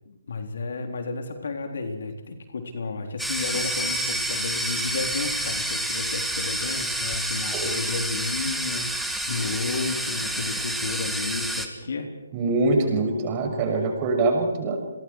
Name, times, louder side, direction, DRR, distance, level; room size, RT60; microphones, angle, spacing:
voice 1, 0.1-12.1, left 3 dB, 65° left, 5 dB, 3.7 m, -32 dB
sound 1, 3.2-11.7, right 1 dB, ahead, 1.8 m, -29 dB
voice 2, 12.3-15.0, right 2 dB, 30° right, 2 dB, 6.8 m, -24 dB
30.0 x 22.5 x 4.8 m, 1.0 s
figure-of-eight pair, 145°, 0 cm